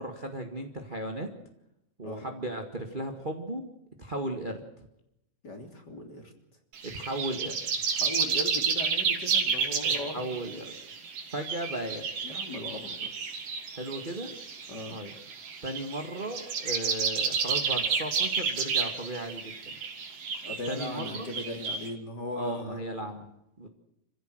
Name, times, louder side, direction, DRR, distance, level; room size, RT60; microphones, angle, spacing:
voice 1, 0.0-1.3 2.0-3.6 4.0-4.9 6.8-7.6 9.8-10.8 11.3-12.1 13.7-14.3 14.9-15.1 15.6-19.7 20.7-21.3 22.3-23.3 23.6-23.7, right 1 dB, 20° right, 5 dB, 1.4 m, -36 dB
voice 2, 5.4-6.3 7.9-10.5 12.2-13.1 14.7-15.0 20.4-22.8, left 1 dB, 30° left, 5 dB, 3.6 m, -38 dB
sound 1, 6.7-21.9, right 5 dB, 85° right, 4.5 m, -31 dB
27.0 x 16.0 x 7.9 m, 0.84 s
omnidirectional pair, 3.7 m